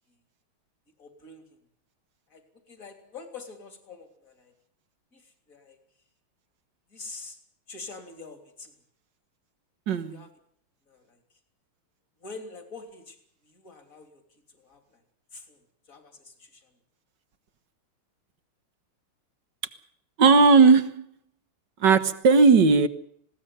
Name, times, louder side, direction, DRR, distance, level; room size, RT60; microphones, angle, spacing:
voice 1, 1.0-1.6 2.3-4.5 5.1-5.8 6.9-7.4 7.7-8.7 9.9-10.3 10.9-11.2 12.2-13.2 13.4-15.0 15.3-15.6 15.9-16.7, left 4 dB, 40° left, 7 dB, 3.7 m, -45 dB
voice 2, 9.9-10.2 20.2-21.1 21.8-22.9, right 4 dB, 60° right, 12 dB, 1.8 m, -17 dB
20.0 x 17.5 x 9.3 m, 0.66 s
omnidirectional pair, 2.3 m